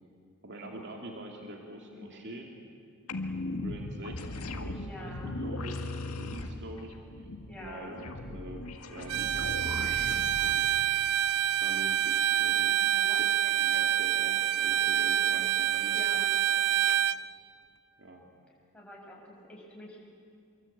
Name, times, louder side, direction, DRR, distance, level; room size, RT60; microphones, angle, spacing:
voice 1, 0.4-2.5 3.6-4.2 4.5-7.3 7.6-8.7 8.9-10.7 11.6-13.0 13.4-16.8 18.0-18.3, right 1 dB, 55° right, 1 dB, 2.4 m, -45 dB
voice 2, 1.9-2.3 4.7-5.4 7.5-8.0 12.9-13.2 15.9-16.3 18.7-20.0, left 1 dB, 5° left, -4 dB, 6.7 m, -46 dB
sound 1, 3.1-10.5, left 2 dB, 85° left, 1.9 m, -38 dB
Bowed string instrument, 9.1-17.2, right 11 dB, 85° right, 0.6 m, -27 dB
26.0 x 23.5 x 8.5 m, 2.4 s
head